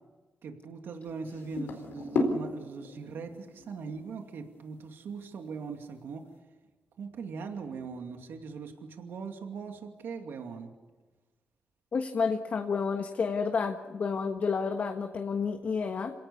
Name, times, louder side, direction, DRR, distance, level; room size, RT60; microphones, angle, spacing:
voice 1, 0.4-6.3 7.0-10.7, right 5 dB, 75° right, 4 dB, 2.4 m, -40 dB
sound 1, 1.0-4.2 5.6-5.7, left 3 dB, 85° left, 4.3 m, -34 dB
voice 2, 11.9-16.1, left 5 dB, 50° left, 5 dB, 1.5 m, -30 dB
27.5 x 18.0 x 7.0 m, 1.3 s
cardioid pair, 120°, 4 cm